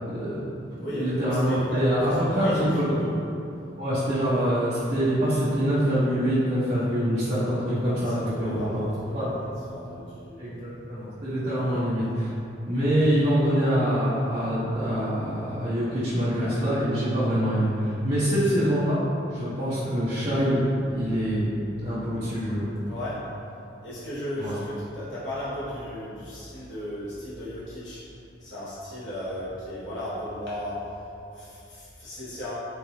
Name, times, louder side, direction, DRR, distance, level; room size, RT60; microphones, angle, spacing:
voice 1, 0.1-0.5 0.9-3.0 3.8-8.8 9.1-9.3 10.4-12.3 12.7-19.0 19.3-21.4 21.8-22.7 24.4-24.5, equal, 35° right, -14 dB, 0.8 m, -25 dB
voice 2, 0.8-3.2 7.8-10.4 11.6-11.8 16.4-16.5 22.8-23.3 23.8-28.0 28.4-30.8 31.3-32.5, left 1 dB, 65° left, -10 dB, 1.2 m, -35 dB
3.8 x 2.5 x 3.0 m, 2.7 s
head